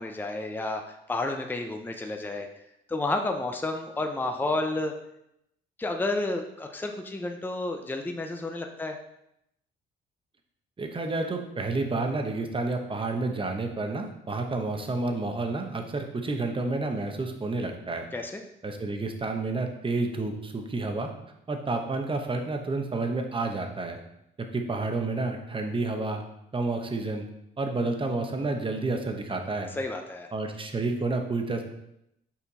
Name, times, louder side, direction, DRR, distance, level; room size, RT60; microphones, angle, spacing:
voice 1, 0.0-2.5 2.9-4.9 5.8-9.0 18.1-18.4 29.7-30.3, left 2 dB, 10° left, 4 dB, 0.6 m, -31 dB
voice 2, 10.8-18.1 18.6-21.1 21.5-24.0 24.4-26.2 26.5-27.3 27.6-29.7 30.3-31.6, right 3 dB, 25° right, 4 dB, 1.0 m, -30 dB
5.8 x 4.3 x 4.1 m, 0.81 s
cardioid pair, 90°, 20 cm